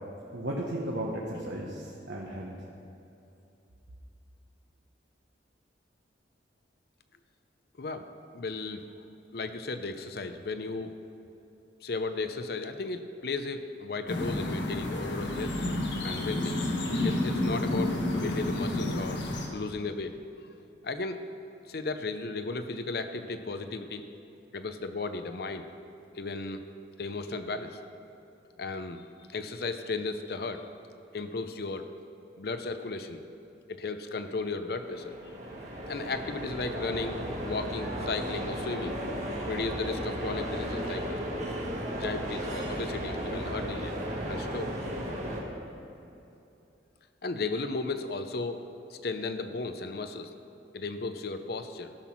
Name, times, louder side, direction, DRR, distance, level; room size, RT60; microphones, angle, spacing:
voice 1, 0.3-2.5, right 1 dB, 80° right, -3 dB, 1.1 m, -35 dB
voice 2, 8.3-8.8 9.3-10.9 11.8-15.6 16.0-16.6 17.0-19.2 19.5-20.1 20.8-21.2 21.7-24.0 24.5-25.7 26.1-26.6 27.0-27.8 28.6-30.7 31.1-31.9 32.4-33.2 33.7-35.2 35.9-39.0 39.5-41.2 42.0-43.9 44.3-44.7 47.2-50.3 50.7-51.9, left 3 dB, 55° left, 9 dB, 0.6 m, -35 dB
sound 1, 14.1-19.5, left 1 dB, 85° left, 1.3 m, -30 dB
sound 2, 34.5-45.4, equal, 40° right, 1.5 m, -35 dB
14.0 x 6.0 x 6.0 m, 2.7 s
head